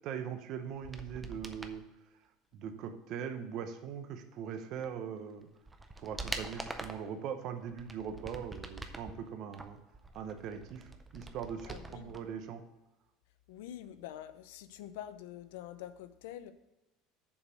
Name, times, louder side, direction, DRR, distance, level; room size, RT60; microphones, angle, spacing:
voice 1, 0.0-1.8 2.5-5.5 6.0-9.8 10.1-12.6, right 7 dB, 40° right, 7 dB, 0.8 m, -41 dB
sound 1, 0.7-1.8 4.8-4.9 5.4-7.1 7.7-9.1 9.5-12.2 12.5-12.6, right 2 dB, 10° right, 0.5 m, -44 dB
voice 2, 11.7-12.1 13.5-16.5, left 11 dB, 85° left, 13 dB, 0.6 m, -46 dB
7.1 x 5.2 x 6.3 m, 1.0 s
cardioid pair, 175°, 0 cm